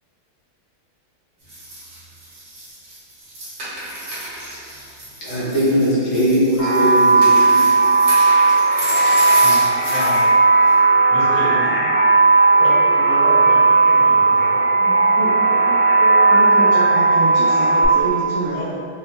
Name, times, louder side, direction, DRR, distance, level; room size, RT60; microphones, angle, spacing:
sound 1, 1.5-10.3 10.6-10.7, right 1 dB, 55° right, 1.3 m, -31 dB
voice 1, 5.2-7.6, equal, 75° left, -9 dB, 1.7 m, -19 dB
sound 2, 6.6-17.9, right 3 dB, 55° left, 0.7 m, -15 dB
voice 2, 9.9-10.2 11.1-11.8 12.6-14.6 18.5-18.7, equal, 20° left, -13 dB, 0.8 m, -30 dB
voice 3, 14.8-18.6, right 1 dB, 85° right, -7 dB, 0.9 m, -27 dB
4.0 x 2.0 x 2.8 m, 2.3 s
omnidirectional pair, 2.3 m